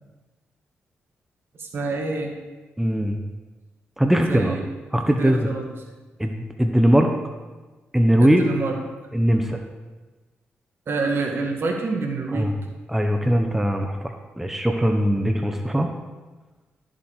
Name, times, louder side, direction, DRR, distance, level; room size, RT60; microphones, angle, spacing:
voice 1, 1.6-2.3 4.3-4.6 5.0-5.7 8.2-8.8 10.9-12.5, right 3 dB, 60° right, 2 dB, 2.0 m, -27 dB
voice 2, 2.8-3.2 4.0-4.6 4.9-5.5 6.2-7.1 7.9-8.5 9.1-9.6 12.3-12.5 12.9-15.9, equal, 5° right, 4 dB, 1.1 m, -20 dB
13.0 x 7.4 x 4.9 m, 1.2 s
supercardioid pair, 55°, 4 cm